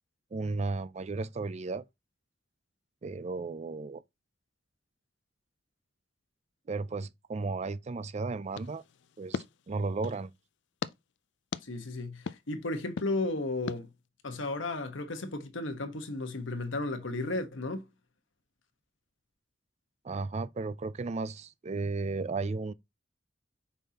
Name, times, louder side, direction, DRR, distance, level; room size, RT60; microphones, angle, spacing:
voice 1, 0.3-1.8 3.0-4.0 6.7-8.8 9.2-10.3 20.0-22.7, right 3 dB, 35° right, 0.4 m, -34 dB
sound 1, 8.5-10.3 10.8-10.9 11.5-11.6 12.3-12.4 13.0-13.1 13.7-13.8, left 5 dB, 65° left, 0.4 m, -38 dB
voice 2, 11.6-13.9 14.2-17.9, left 2 dB, 80° left, 1.2 m, -34 dB
6.9 x 5.5 x 2.9 m
head